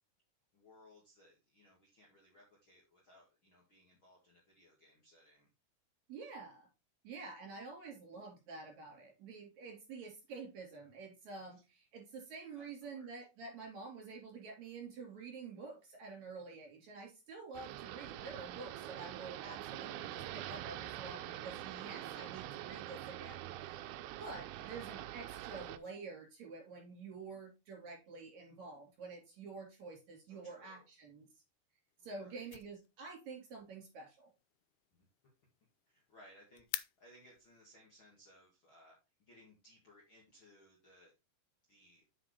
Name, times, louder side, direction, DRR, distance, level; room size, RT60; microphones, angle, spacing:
voice 1, 0.5-5.5 12.5-13.1 24.5-24.9 30.3-30.9 32.0-32.5 34.9-35.1 35.9-36.7 37.0-39.0 39.3-41.1 41.7-42.0, left 1 dB, 40° left, -3 dB, 2.1 m, -63 dB
voice 2, 6.1-6.7 7.0-31.4 32.0-34.3, right 4 dB, 50° right, 0 dB, 4.7 m, -49 dB
sound 1, 17.5-25.8, right 13 dB, 80° right, 2.5 m, -45 dB
sound 2, 31.9-37.7, left 16 dB, 85° left, 2.6 m, -50 dB
7.5 x 7.1 x 3.3 m, 0.27 s
omnidirectional pair, 4.5 m